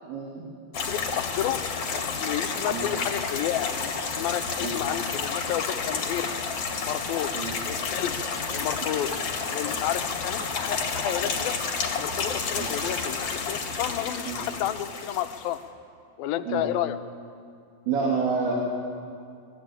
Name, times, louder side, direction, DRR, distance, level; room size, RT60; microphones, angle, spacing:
voice 1, 0.1-0.5 2.7-2.9 4.6-4.8 7.3-7.5 12.6-12.7 14.3-14.4 16.5-16.7 17.9-18.7, right 4 dB, 85° right, -3 dB, 4.7 m, -28 dB
voice 2, 0.7-1.6 1.9-6.3 6.8-7.3 7.7-8.2 8.5-9.1 9.5-11.5 12.0-15.6 16.2-17.0, left 11 dB, 75° left, 9 dB, 2.6 m, -31 dB
sound 1, 0.7-15.5, left 5 dB, 45° left, 2.9 m, -30 dB
25.0 x 21.5 x 8.9 m, 2.3 s
omnidirectional pair, 4.4 m